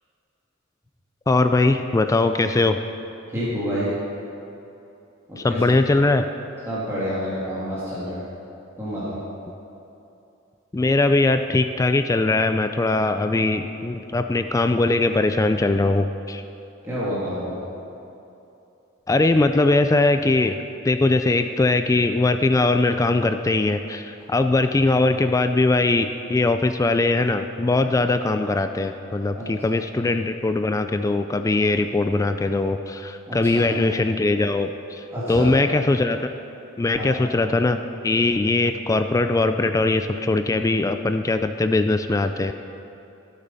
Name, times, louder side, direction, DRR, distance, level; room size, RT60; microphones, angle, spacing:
voice 1, 1.3-2.8 5.4-6.3 10.7-16.4 19.1-20.6 20.8-36.3 36.8-42.5, left 2 dB, 15° left, 8 dB, 0.3 m, -21 dB
voice 2, 3.3-3.9 5.3-5.7 6.7-8.2 8.8-9.2 16.8-17.6 29.4-29.5 33.3-33.6 35.1-35.5 36.9-37.1, equal, 15° right, -10 dB, 2.2 m, -28 dB
15.0 x 8.1 x 5.5 m, 2.9 s
head